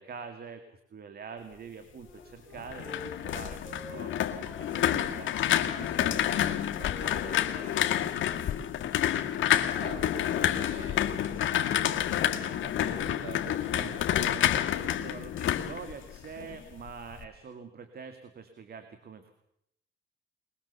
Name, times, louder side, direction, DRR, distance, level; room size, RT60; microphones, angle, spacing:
voice 1, 0.0-5.3 5.7-8.6 13.7-14.0 14.8-19.3, right 6 dB, 50° right, 8 dB, 2.4 m, -46 dB
Wind instrument woodwind instrument, 2.0-5.0 5.3-8.6, left 2 dB, 5° right, 5.6 m, -49 dB
sound 1, 2.5-16.6 16.9-17.2, left 11 dB, 75° left, 1.8 m, -29 dB
voice 2, 9.7-14.7, right 6 dB, 85° right, 4 dB, 5.2 m, -47 dB
22.0 x 21.0 x 7.0 m, 0.75 s
cardioid pair, 90°, 20 cm